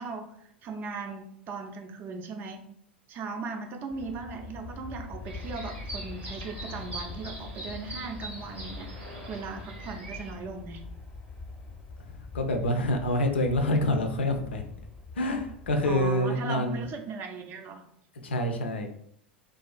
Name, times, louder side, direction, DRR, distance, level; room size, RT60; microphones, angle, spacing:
voice 1, 0.0-2.7 3.1-10.8 15.8-17.9, right 4 dB, 35° right, 4 dB, 0.4 m, -38 dB
Aircraft, 3.9-16.1, left 3 dB, 20° left, 0.5 m, -43 dB
sound 1, 5.2-10.3, right 1 dB, 85° right, 0.8 m, -43 dB
voice 2, 12.1-14.6 15.2-16.8 18.2-18.9, left 1 dB, 75° left, 4 dB, 0.4 m, -27 dB
2.4 x 2.3 x 2.3 m, 0.68 s
figure-of-eight pair, 85°, 6 cm